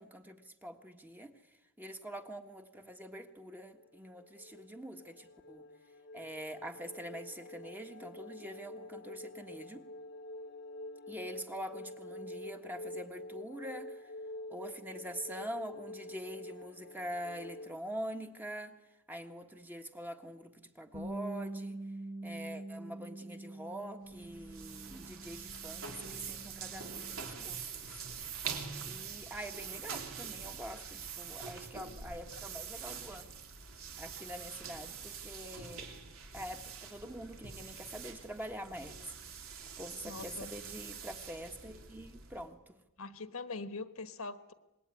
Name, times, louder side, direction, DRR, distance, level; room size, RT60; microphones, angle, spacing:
voice 1, 0.0-1.3 1.8-5.6 6.1-9.8 11.1-14.0 14.5-18.7 19.1-21.8 22.2-28.3 28.9-33.3 34.0-35.9 36.3-39.1 39.8-42.8, equal, 10° right, 5 dB, 1.4 m, -45 dB
sound 1, 3.6-17.8, left 1 dB, 50° left, 1.2 m, -47 dB
Bass guitar, 20.9-27.2, right 1 dB, 40° right, 5.9 m, -45 dB
sound 2, 24.1-42.5, right 6 dB, 70° right, 3.3 m, -45 dB
voice 2, 40.0-40.5 43.0-44.5, left 3 dB, 75° left, 11 dB, 1.5 m, -42 dB
26.0 x 20.5 x 9.7 m, 1.0 s
head